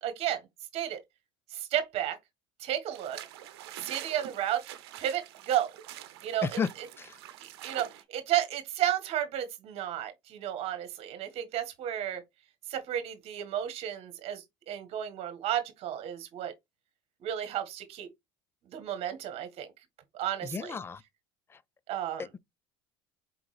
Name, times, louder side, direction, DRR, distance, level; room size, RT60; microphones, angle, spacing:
voice 1, 0.0-0.4 0.7-1.0 1.5-2.2 2.6-3.2 3.8-4.6 5.0-5.7 6.2-6.9 7.4-12.2 12.7-16.5 17.2-18.1 18.7-19.7 20.1-20.8 21.9-22.3, right 11 dB, 50° right, 1.5 m, -32 dB
sound 1, 2.9-8.0, right 13 dB, 80° right, 0.8 m, -46 dB
voice 2, 20.4-21.0 22.2-22.4, left 5 dB, 20° left, 0.4 m, -33 dB
4.6 x 3.6 x 3.2 m
supercardioid pair, 95°, 13 cm